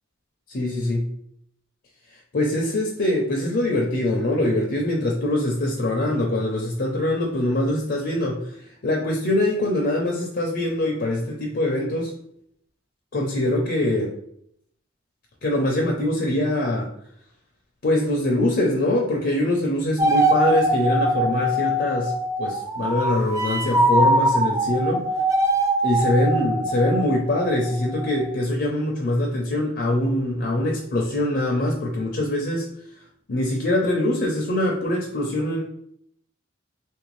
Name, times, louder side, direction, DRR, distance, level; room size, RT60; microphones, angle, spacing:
voice 1, 0.5-1.1 2.3-12.1 13.1-14.1 15.4-16.9 17.8-22.1 22.4-25.1 25.8-32.7 33.3-35.6, left 1 dB, 50° left, -1 dB, 0.5 m, -23 dB
sound 1, 20.0-28.3, right 1 dB, 15° right, 0.3 m, -22 dB
3.2 x 2.5 x 3.1 m, 0.71 s
head